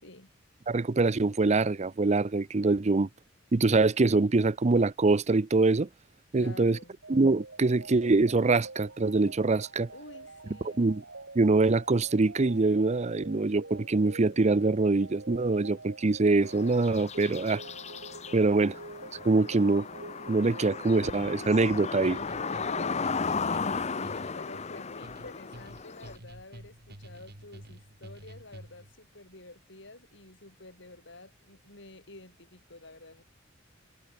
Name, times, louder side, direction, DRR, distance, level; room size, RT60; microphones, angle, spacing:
voice 1, 0.7-3.1 3.5-5.9 6.3-6.8 7.1-9.9 10.8-11.0 11.3-17.6 18.3-18.8 19.2-19.9 20.3-22.2, right 3 dB, 35° right, 0.6 m, -24 dB
voice 2, 6.3-7.0 9.9-10.8 23.4-33.2, left 2 dB, 65° left, 6.2 m, -49 dB
sound 1, 7.0-23.6, right 2 dB, 75° right, 4.9 m, -47 dB
sound 2, 16.5-26.2, left 5 dB, 35° left, 0.9 m, -35 dB
sound 3, 21.0-28.9, right 1 dB, 55° right, 4.6 m, -49 dB
head